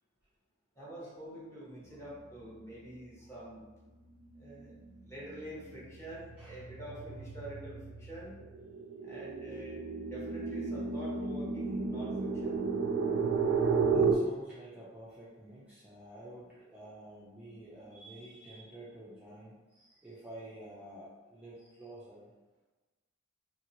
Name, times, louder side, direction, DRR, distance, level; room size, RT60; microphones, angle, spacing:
voice 1, 0.7-3.7 4.3-4.8 5.0-8.3 9.0-9.8 10.1-12.6, right 1 dB, 15° left, -7 dB, 0.9 m, -46 dB
sound 1, 4.5-4.8 5.2-14.1, right 5 dB, 75° right, 0.3 m, -33 dB
voice 2, 13.9-22.3, right 1 dB, 10° right, -9 dB, 0.4 m, -50 dB
2.8 x 2.8 x 2.7 m, 1.2 s
head